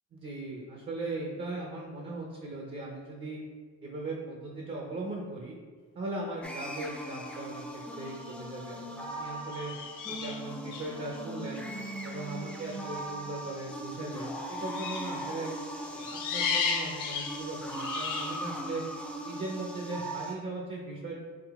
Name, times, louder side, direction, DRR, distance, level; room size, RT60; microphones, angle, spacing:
voice 1, 0.1-3.4 3.8-5.6 5.9-9.7 10.1-11.6 12.0-15.5 15.9-18.8 19.2-21.2, right 2 dB, 40° right, -1 dB, 0.6 m, -38 dB
sound 1, 6.4-20.3, right 1 dB, 5° left, 0.5 m, -39 dB
sound 2, 8.1-8.3 9.5-10.9 14.7-15.2 16.0-18.4, left 6 dB, 90° left, 0.5 m, -34 dB
3.7 x 2.8 x 3.5 m, 1.5 s
cardioid pair, 90°, 30 cm